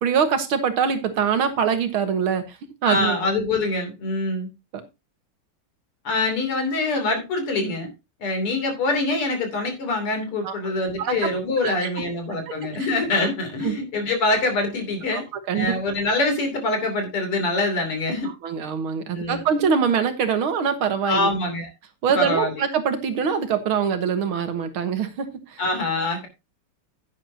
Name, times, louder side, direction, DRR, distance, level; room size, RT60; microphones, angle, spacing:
voice 1, 0.0-3.2 4.7-4.8 10.4-10.7 11.0-11.3 11.6-11.9 12.8-12.9 13.6-13.8 15.1-15.7 18.2-21.3 22.0-25.6, right 7 dB, 70° right, 9 dB, 2.2 m, -24 dB
voice 2, 2.9-4.5 6.0-7.9 8.2-15.2 15.5-18.3 19.1-19.4 21.1-21.7 22.2-22.5 25.6-26.3, left 2 dB, 85° left, 5 dB, 4.1 m, -24 dB
11.0 x 10.0 x 2.8 m, 0.25 s
omnidirectional pair, 2.4 m